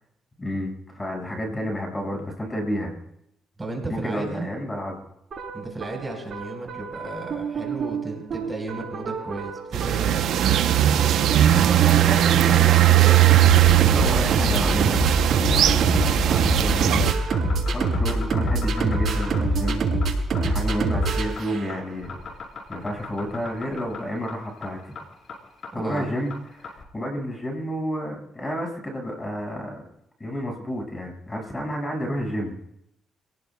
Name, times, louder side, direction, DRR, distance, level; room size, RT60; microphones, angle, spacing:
voice 1, 0.4-2.9 3.9-5.0 11.7-13.2 13.8-15.0 15.5-17.1 17.7-19.8 20.3-22.2 22.7-24.9 25.7-29.8 30.2-32.5, equal, 20° left, 1 dB, 5.8 m, -30 dB
voice 2, 3.6-4.5 5.5-10.5 25.7-26.1, right 2 dB, 20° right, 1 dB, 4.4 m, -34 dB
sound 1, 5.3-22.0, right 2 dB, 50° right, 7.0 m, -26 dB
sound 2, 9.7-17.1, right 12 dB, 80° right, 0.8 m, -18 dB
sound 3, 17.3-26.8, left 5 dB, 65° left, 4.3 m, -39 dB
29.0 x 18.5 x 2.3 m, 0.78 s
cardioid pair, 90°, 0 cm